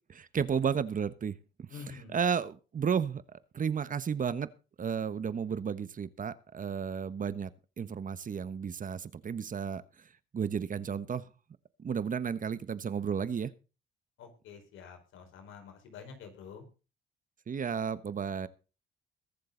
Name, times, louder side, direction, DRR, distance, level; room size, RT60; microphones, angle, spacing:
voice 1, 0.1-1.7 2.1-3.2 3.5-4.5 4.8-7.5 7.8-9.8 10.3-11.3 11.8-13.5 17.5-18.5, right 7 dB, 40° right, 15 dB, 1.2 m, -33 dB
voice 2, 1.7-2.2 14.2-16.6, left 6 dB, 85° left, 5 dB, 4.7 m, -48 dB
22.0 x 7.7 x 3.9 m, 0.33 s
cardioid pair, 90°, 20 cm